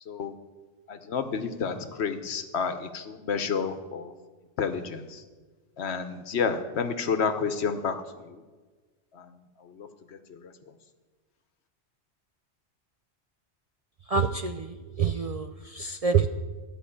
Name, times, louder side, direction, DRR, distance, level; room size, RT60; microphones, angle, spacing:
voice 1, 0.9-4.1 4.6-5.2 5.8-8.0 8.2-8.4 9.1-9.3 9.6-10.5, left 6 dB, 70° left, 9 dB, 1.1 m, -30 dB
voice 2, 14.1-16.3, right 6 dB, 50° right, 7 dB, 0.4 m, -27 dB
13.5 x 5.3 x 8.5 m, 1.4 s
omnidirectional pair, 1.2 m